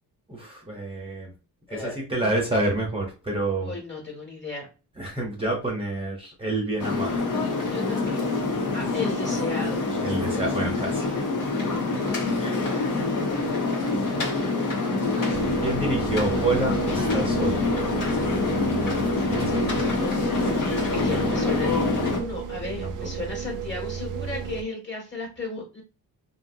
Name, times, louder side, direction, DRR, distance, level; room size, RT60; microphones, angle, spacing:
voice 1, 0.3-1.3 1.7-3.7 5.0-7.2 10.0-11.1 15.6-17.7 19.3-19.7 22.8-22.9, right 2 dB, 15° right, -2 dB, 0.9 m, -28 dB
voice 2, 1.7-2.3 3.6-4.7 7.7-8.2 8.7-9.8 20.3-20.6 20.9-25.8, left 4 dB, 30° left, 0 dB, 1.6 m, -35 dB
sound 1, 6.8-22.2, left 3 dB, 55° left, 1.2 m, -25 dB
sound 2, 15.3-24.6, right 8 dB, 55° right, 0.6 m, -33 dB
2.8 x 2.6 x 2.6 m, 0.34 s
cardioid pair, 95°, 38 cm